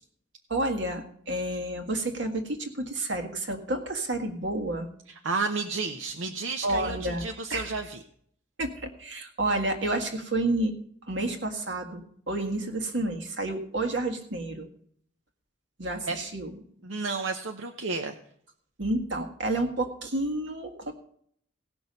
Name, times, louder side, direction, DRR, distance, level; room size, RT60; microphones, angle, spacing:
voice 1, 0.5-4.9 6.6-7.2 7.5-7.8 8.6-10.7 11.1-14.7 15.8-16.5 18.8-20.9, right 2 dB, 65° right, 4 dB, 1.8 m, -30 dB
voice 2, 5.1-8.0 16.1-16.2 16.8-18.1, right 4 dB, 85° right, 5 dB, 0.8 m, -31 dB
17.5 x 6.2 x 5.3 m, 0.64 s
head